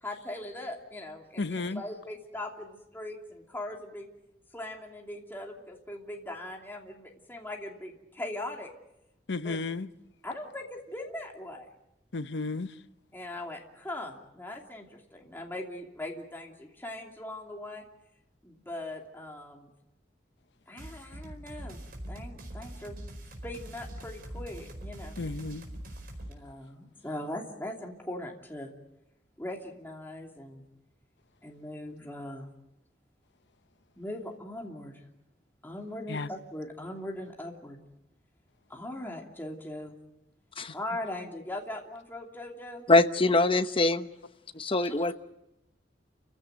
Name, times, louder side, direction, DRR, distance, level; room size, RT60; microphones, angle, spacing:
voice 1, 0.0-4.1 4.5-8.7 9.4-9.6 10.2-11.7 13.1-17.8 18.4-19.7 20.7-21.8 22.1-23.0 23.4-25.2 26.3-28.7 29.4-30.6 31.4-32.5 34.0-35.0 35.6-37.8 38.7-39.9 40.7-42.8 43.2-43.3 44.8-44.9, left 1 dB, 10° left, 2.8 m, -40 dB
voice 2, 1.4-1.8 9.3-9.9 12.1-12.7 25.2-25.7 36.1-36.3, left 3 dB, 75° left, 0.8 m, -33 dB
sound 1, 20.8-26.3, right 1 dB, 55° right, 4.8 m, -42 dB
voice 3, 42.9-44.1 44.5-45.1, left 2 dB, 30° left, 1.0 m, -23 dB
29.5 x 16.0 x 9.3 m
head